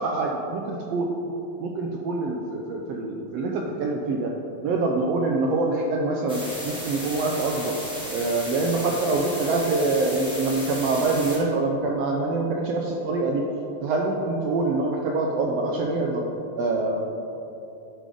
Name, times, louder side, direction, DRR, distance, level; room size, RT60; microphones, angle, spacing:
voice 1, 0.0-4.3 4.6-7.8 8.1-13.4 13.8-16.2 16.6-17.0, right 3 dB, 85° right, 0 dB, 1.4 m, -25 dB
sound 1, 6.3-11.4, equal, 5° right, 0.5 m, -35 dB
10.0 x 3.8 x 5.0 m, 2.8 s
omnidirectional pair, 3.5 m